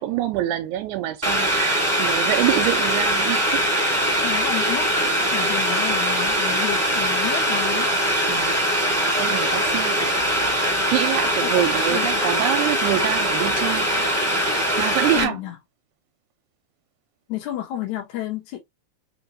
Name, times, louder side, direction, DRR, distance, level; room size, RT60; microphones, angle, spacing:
voice 1, 0.0-3.7 8.3-8.7 9.2-10.1 10.9-14.1 14.8-15.4, right 13 dB, 85° right, 2.0 m, -25 dB
Boiling, 1.2-15.2, equal, 10° right, 1.0 m, -22 dB
voice 2, 4.2-7.9 11.4-11.6 11.9-12.2 15.1-15.6 17.3-18.6, left 12 dB, 80° left, 2.4 m, -31 dB
5.1 x 2.9 x 2.9 m
omnidirectional pair, 3.4 m